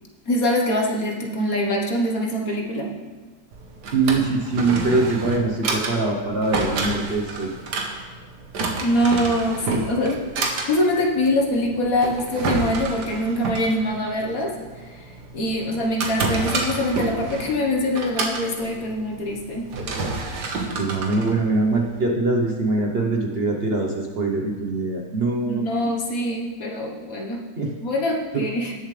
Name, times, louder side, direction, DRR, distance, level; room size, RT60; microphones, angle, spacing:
voice 1, 0.3-2.9 8.8-10.2 10.7-14.5 15.0-15.1 15.3-19.8 25.5-27.5 27.8-28.7, left 1 dB, 55° left, 0 dB, 1.7 m, -24 dB
Drawer open or close, 3.5-22.1, right 3 dB, 80° right, 1.8 m, -29 dB
voice 2, 3.9-7.5 20.8-25.6 27.6-27.7, right 3 dB, 45° right, 0 dB, 1.0 m, -23 dB
18.5 x 7.2 x 3.3 m, 1.3 s
omnidirectional pair, 1.8 m